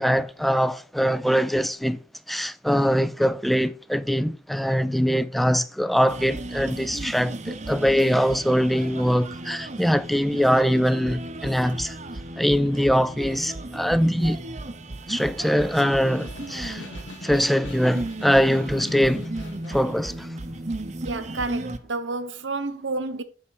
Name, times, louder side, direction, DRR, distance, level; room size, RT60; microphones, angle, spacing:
voice 1, 0.0-2.0 2.3-12.0 12.4-14.4 15.1-16.9 17.2-19.3 19.7-20.3, equal, ahead, 0.3 m, -22 dB
sound 1, 6.1-21.8, right 1 dB, 35° right, 0.7 m, -35 dB
Snare drum, 15.0-20.0, left 2 dB, 75° left, 1.5 m, -43 dB
voice 2, 21.0-23.2, right 3 dB, 70° right, 1.0 m, -30 dB
8.7 x 5.6 x 4.7 m
head